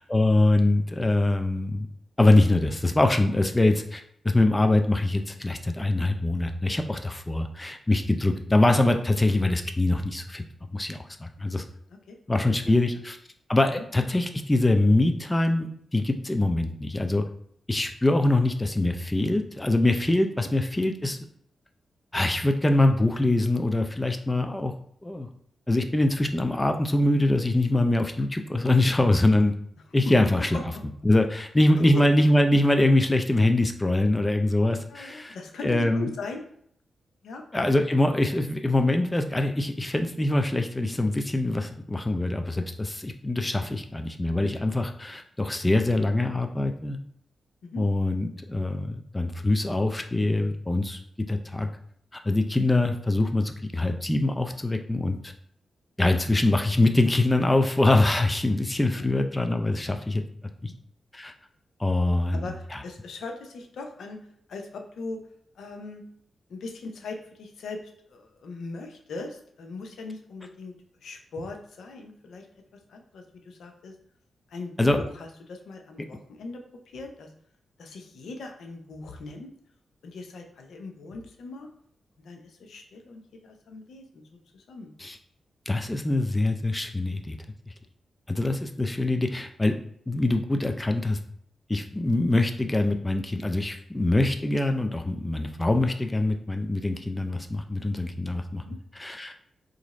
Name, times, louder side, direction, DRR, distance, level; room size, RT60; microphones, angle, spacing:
voice 1, 0.0-1.9 2.2-10.4 10.7-11.6 12.3-13.2 13.5-17.3 17.7-21.2 22.1-24.7 25.0-25.3 25.7-29.6 29.9-30.5 31.0-35.4 35.6-36.1 37.5-47.0 47.8-51.7 52.1-55.3 56.0-60.2 60.6-60.7 61.1-61.3 61.8-62.4 62.7-62.8 74.8-75.0 85.0-85.2 85.7-87.3 88.3-89.8 90.1-91.2 91.7-98.6 99.0-99.3, left 2 dB, 20° left, 5 dB, 0.4 m, -24 dB
voice 2, 12.4-12.8 13.7-13.8 20.4-20.5 30.1-30.6 31.8-32.0 34.9-36.5 37.2-37.4 47.6-47.8 59.0-59.1 60.6-60.7 62.3-64.2 64.5-65.2 65.6-66.0 66.5-67.8 68.1-70.7 71.0-72.5 72.9-73.9 74.5-76.6 76.9-77.3 77.8-79.5 80.0-81.7 82.2-84.2 84.5-84.9 98.5-98.8, left 3 dB, 80° left, 4 dB, 0.6 m, -39 dB
2.9 x 2.6 x 4.0 m, 0.66 s
cardioid pair, 55°, 0 cm